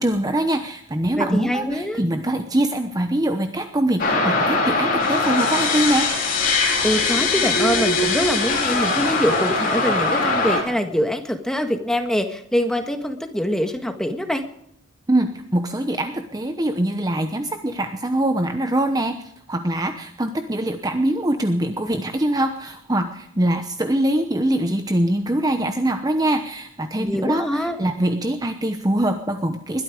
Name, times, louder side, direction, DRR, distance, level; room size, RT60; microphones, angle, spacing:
voice 1, 0.0-6.1 15.1-29.8, right 1 dB, 20° right, 7 dB, 0.9 m, -23 dB
voice 2, 1.2-2.0 6.8-14.5 27.0-27.9, equal, 5° left, 6 dB, 1.6 m, -24 dB
sound 1, 4.0-10.6, left 3 dB, 40° left, 4.6 m, -21 dB
21.0 x 13.0 x 5.0 m, 0.72 s
head